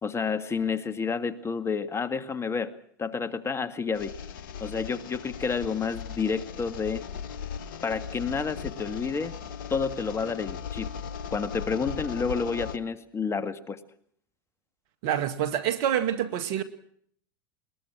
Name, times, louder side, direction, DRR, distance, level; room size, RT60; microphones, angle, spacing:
voice 1, 0.0-2.7 3.0-4.1 4.6-7.0 7.8-9.4 9.7-10.9 11.3-13.8, left 5 dB, 25° left, 2.0 m, -30 dB
sound 1, 3.9-12.8, left 7 dB, 70° left, 1.4 m, -38 dB
voice 2, 15.0-16.6, right 10 dB, 60° right, 2.3 m, -27 dB
21.5 x 21.5 x 6.2 m
hypercardioid pair, 90°, 11 cm